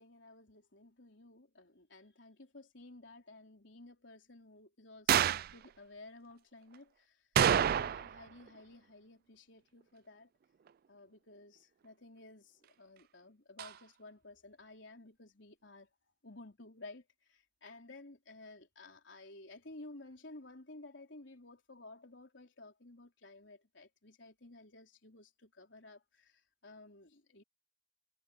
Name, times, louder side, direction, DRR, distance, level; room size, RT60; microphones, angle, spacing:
voice 1, 0.0-7.3 7.7-10.3 10.9-15.9 16.2-27.4, left 2 dB, 70° left, 4.1 m, -54 dB
sound 1, 5.1-5.5 7.4-8.2 8.5-8.6 13.6-13.7, right 9 dB, 50° right, 0.3 m, -28 dB
head